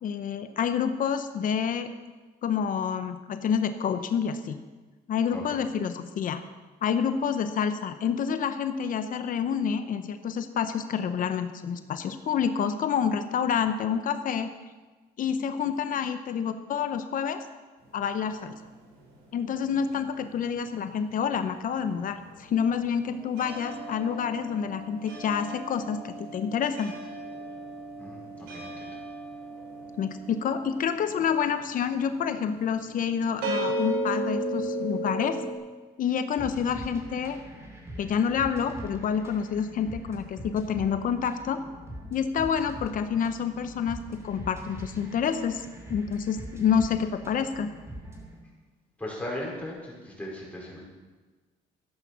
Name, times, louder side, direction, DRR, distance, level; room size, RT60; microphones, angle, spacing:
voice 1, 0.0-1.9 2.4-4.6 5.1-6.4 6.8-14.5 15.2-17.5 17.9-18.6 19.3-26.9 30.0-35.4 36.0-37.4 38.0-41.6 42.1-47.7, left 7 dB, 55° left, 9 dB, 0.9 m, -28 dB
sound 1, 17.8-20.5 20.8-35.5, right 1 dB, 90° right, 4.1 m, -36 dB
voice 2, 28.0-29.0 49.0-50.8, left 1 dB, 10° left, -4 dB, 5.4 m, -38 dB
sound 2, 36.4-48.4, right 1 dB, 15° right, 3.1 m, -43 dB
13.0 x 10.5 x 6.1 m, 1.3 s
cardioid pair, 110°, 17 cm